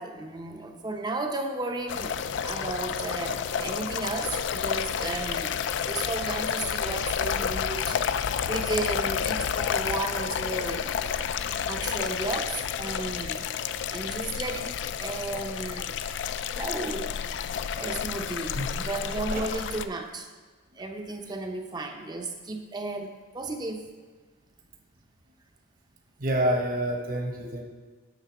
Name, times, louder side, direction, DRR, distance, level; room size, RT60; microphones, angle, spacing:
voice 1, 0.0-11.0 11.7-13.5 13.9-16.0 16.5-17.1 17.8-20.3 20.8-23.9, right 2 dB, 20° right, 5 dB, 0.6 m, -34 dB
sound 1, 1.9-19.9, left 7 dB, 65° left, 0.3 m, -30 dB
voice 2, 26.2-27.6, right 1 dB, 45° right, 2 dB, 1.0 m, -27 dB
9.1 x 3.7 x 6.0 m, 1.4 s
head